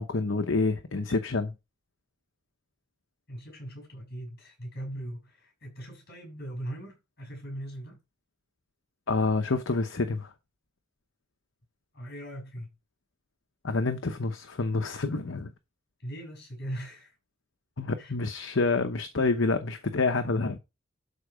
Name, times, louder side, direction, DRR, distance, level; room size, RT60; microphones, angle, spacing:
voice 1, 0.0-1.5 9.1-10.3 13.6-15.5 17.8-20.6, left 3 dB, 70° left, 0.9 m, -28 dB
voice 2, 3.3-8.0 11.9-12.7 16.0-17.1 18.0-18.1, right 1 dB, 50° left, 6.2 m, -40 dB
12.0 x 4.5 x 5.1 m
head